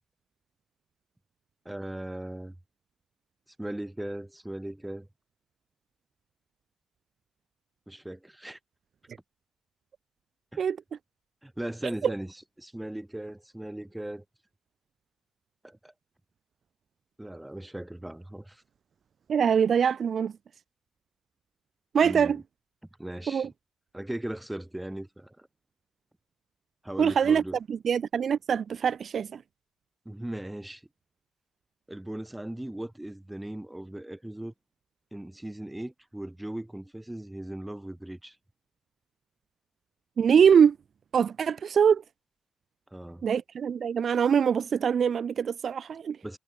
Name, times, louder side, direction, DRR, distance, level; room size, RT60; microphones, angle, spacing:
voice 1, 1.6-2.5 3.6-5.1 7.9-8.6 10.5-10.7 11.4-14.2 15.6-15.9 17.2-18.6 22.0-22.4 23.0-23.5 23.9-25.5 26.8-27.6 30.1-30.8 31.9-34.5 35.1-38.4 42.9-43.2 46.2-46.4, right 1 dB, 5° right, 2.4 m, -38 dB
voice 2, 19.3-20.3 21.9-22.4 23.3-23.5 27.0-27.4 27.7-29.4 40.2-40.8 41.1-42.0 43.2-46.2, right 7 dB, 50° right, 1.0 m, -23 dB
cardioid pair, 90°, 0 cm